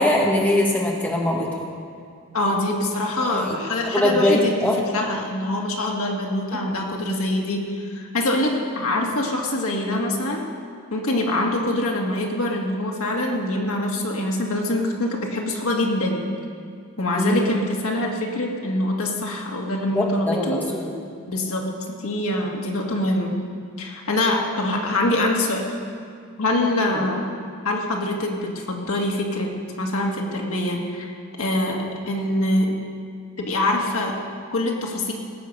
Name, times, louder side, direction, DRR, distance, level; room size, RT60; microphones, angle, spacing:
voice 1, 0.0-1.7 3.3-3.6 3.9-4.8 6.5-6.6 17.2-17.4 19.9-20.9, left 1 dB, 10° left, -2 dB, 1.4 m, -22 dB
voice 2, 2.3-10.4 10.9-16.3 17.0-20.6 21.3-23.3 23.8-25.6 26.4-27.2 27.6-29.5 29.8-31.1 31.4-32.7 33.4-34.1 34.5-35.1, left 1 dB, 85° left, 0 dB, 1.9 m, -24 dB
18.0 x 7.9 x 5.5 m, 2.3 s
head